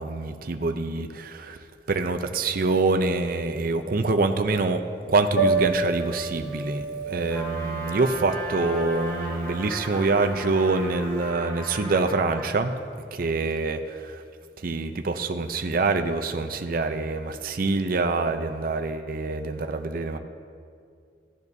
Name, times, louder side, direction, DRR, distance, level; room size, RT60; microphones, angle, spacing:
voice 1, 0.0-1.6 1.9-4.8 5.1-12.7 13.1-14.2 14.6-20.2, right 3 dB, 55° right, 7 dB, 0.5 m, -25 dB
Piano, 5.3-11.2, right 3 dB, 75° left, 1.1 m, -30 dB
Trumpet, 7.3-12.6, equal, 15° left, 2.2 m, -36 dB
16.0 x 10.5 x 2.7 m, 2.2 s
head